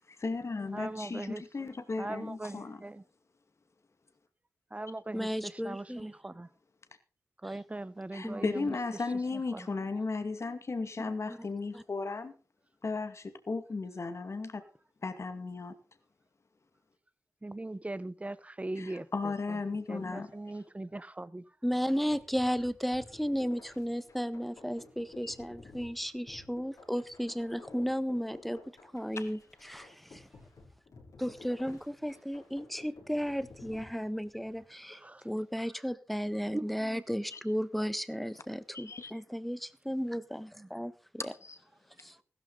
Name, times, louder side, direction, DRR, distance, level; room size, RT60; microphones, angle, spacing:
voice 1, 0.0-2.8 8.1-12.3 12.8-14.6 15.0-15.7 18.8-20.3 25.2-25.3 29.2-29.3 37.3-37.4 38.7-39.1 41.2-41.6, left 3 dB, 50° left, 2.2 m, -35 dB
voice 2, 0.7-1.4 2.0-3.0 4.7-6.5 7.4-9.0 9.3-9.8 17.4-19.6 19.9-21.4 34.9-35.2 36.5-37.0 40.6-40.7, right 2 dB, 20° right, 1.1 m, -40 dB
voice 3, 5.1-6.1 8.2-8.5 11.3-11.5 11.7-11.8 21.6-28.6 28.9-30.3 31.2-35.0 35.2-41.3 42.0-42.1, equal, ahead, 1.4 m, -34 dB
sound 1, 22.1-34.6, left 3 dB, 75° left, 6.6 m, -54 dB
15.5 x 13.5 x 4.0 m
cardioid pair, 50°, 6 cm